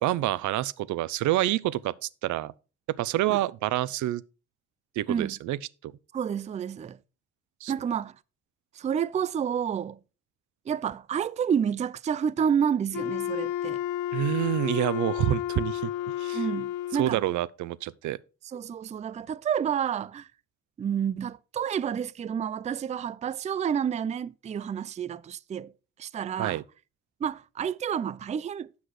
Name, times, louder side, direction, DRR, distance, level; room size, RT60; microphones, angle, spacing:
voice 1, 0.0-2.5 2.9-4.2 5.0-5.9 7.6-7.7 14.1-15.9 16.2-16.4 17.0-18.2 26.4-26.6, right 14 dB, 75° right, 0.5 m, -27 dB
voice 2, 6.1-7.0 7.7-8.2 8.7-10.0 10.7-13.8 16.3-17.2 18.4-20.3 20.8-25.7 26.0-26.6 27.2-28.7, right 8 dB, 25° right, 0.3 m, -29 dB
Wind instrument woodwind instrument, 12.9-17.2, left 12 dB, 85° left, 0.5 m, -31 dB
8.0 x 6.3 x 4.8 m
cardioid pair, 90°, 30 cm